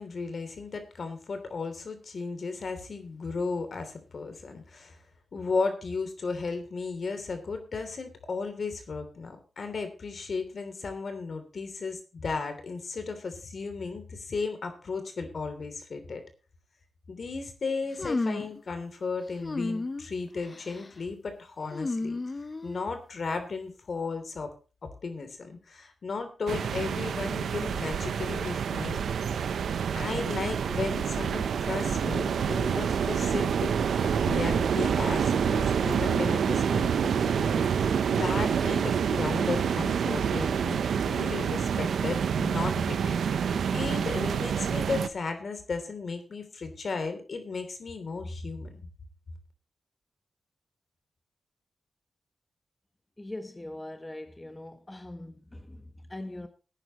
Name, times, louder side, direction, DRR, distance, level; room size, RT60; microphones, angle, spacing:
voice 1, 0.0-5.0 5.3-16.2 17.1-22.2 22.6-24.5 24.8-29.1 29.9-33.7 34.2-48.9, left 4 dB, 60° left, 3.1 m, -35 dB
sound 1, 18.0-18.6 19.4-20.1 20.5-20.9 21.7-22.9, left 3 dB, 35° left, 0.7 m, -32 dB
sound 2, 26.5-45.1, right 7 dB, 90° right, 0.8 m, -27 dB
voice 2, 53.2-56.5, left 1 dB, 20° left, 1.3 m, -41 dB
18.5 x 9.9 x 3.0 m
cardioid pair, 75°, 0 cm